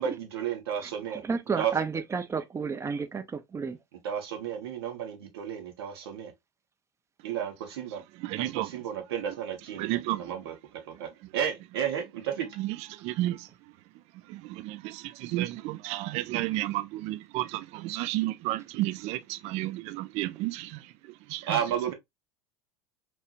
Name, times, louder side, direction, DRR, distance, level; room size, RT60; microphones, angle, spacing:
voice 1, 0.0-1.2 1.6-1.7 4.0-6.3 7.2-8.0 8.4-10.5 10.8-12.5 21.5-21.9, right 9 dB, 85° right, 1.3 m, -32 dB
voice 2, 0.8-3.8, right 5 dB, 20° right, 0.7 m, -32 dB
voice 3, 8.1-8.7 9.3-9.4 9.8-10.3 10.9-11.3 12.6-21.6, right 16 dB, 55° right, 0.4 m, -33 dB
4.5 x 2.7 x 2.4 m
hypercardioid pair, 95°, 13 cm